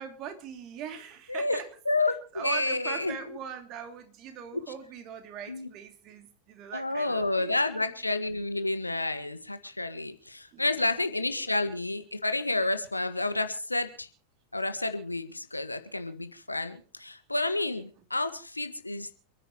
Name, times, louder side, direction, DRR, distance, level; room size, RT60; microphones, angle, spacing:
voice 1, 0.0-1.7 2.3-7.6 10.5-10.8 11.4-11.5, right 8 dB, 35° right, 7 dB, 2.9 m, -41 dB
voice 2, 1.3-1.6 1.8-3.1 4.5-4.6 5.5-5.7 6.7-14.1 14.5-19.1, left 2 dB, 85° left, 9 dB, 1.7 m, -30 dB
28.5 x 10.0 x 3.1 m, 0.40 s
figure-of-eight pair, 90°, 0 cm